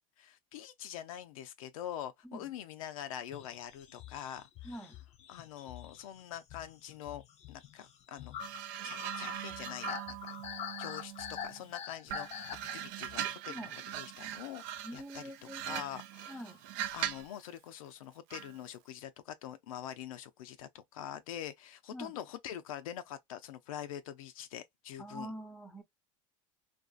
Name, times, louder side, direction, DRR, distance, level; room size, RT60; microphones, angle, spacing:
voice 1, 0.2-4.9 5.3-7.2 7.5-8.4 8.8-10.4 10.8-12.4 12.7-16.6 16.9-25.3, left 11 dB, 85° left, 0.5 m, -45 dB
sound 1, 3.3-13.3, left 9 dB, 40° left, 0.6 m, -45 dB
voice 2, 4.6-5.0 13.5-13.7 14.8-15.8 16.3-16.6 21.9-22.2 25.0-25.8, equal, 5° left, 0.7 m, -45 dB
sound 2, 8.4-11.6 12.1-17.4 18.3-18.6, right 11 dB, 65° right, 0.5 m, -41 dB
2.5 x 2.3 x 2.3 m
supercardioid pair, 105°, 17 cm